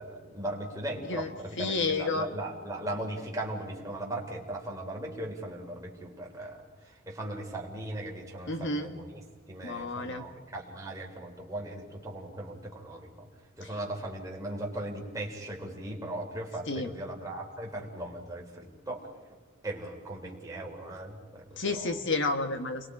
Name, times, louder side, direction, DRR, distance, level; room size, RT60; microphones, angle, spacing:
voice 1, 0.0-9.2 9.5-13.3 13.6-19.0 19.6-21.9, right 1 dB, 15° right, -2 dB, 3.6 m, -38 dB
voice 2, 1.6-2.3 8.5-8.9 9.6-10.2 16.7-16.9 21.6-22.9, left 3 dB, 60° left, 7 dB, 1.7 m, -30 dB
29.5 x 22.0 x 4.9 m, 1.5 s
head